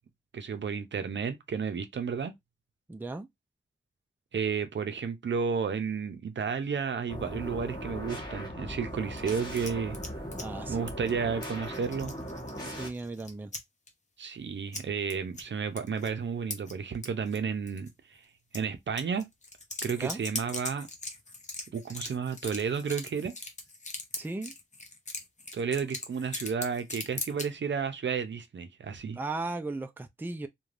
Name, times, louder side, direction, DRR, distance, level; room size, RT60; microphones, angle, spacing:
voice 1, 0.3-2.3 4.3-10.0 10.7-12.1 14.2-18.2 18.5-19.3 19.8-20.9 21.7-23.3 25.5-29.2, right 6 dB, 75° right, 0.5 m, -32 dB
voice 2, 2.9-3.3 10.4-10.8 12.7-13.5 19.9-20.2 24.2-24.5 29.2-30.5, right 2 dB, 10° right, 0.3 m, -36 dB
sound 1, 7.1-12.9, equal, 20° left, 1.2 m, -39 dB
sound 2, 9.2-10.4 10.9-11.2 11.4-13.6 13.9-14.0 14.7-14.8 15.1-15.4 15.8-16.1 16.5-17.4 17.7-17.9 18.5-18.6 19.0-27.5, left 2 dB, 40° left, 0.7 m, -40 dB
3.2 x 2.2 x 2.5 m
wide cardioid pair, 105°, 19 cm